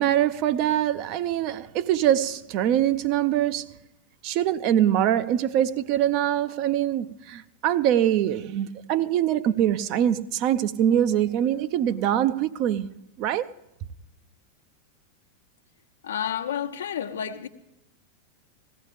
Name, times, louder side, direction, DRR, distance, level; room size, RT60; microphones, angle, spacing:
voice 1, 0.0-3.7 4.2-12.9 13.2-13.5, right 11 dB, 40° right, 0.6 m, -23 dB
voice 2, 16.0-17.5, left 8 dB, 65° left, 1.0 m, -30 dB
19.0 x 15.0 x 3.4 m
figure-of-eight pair, 90°, 0 cm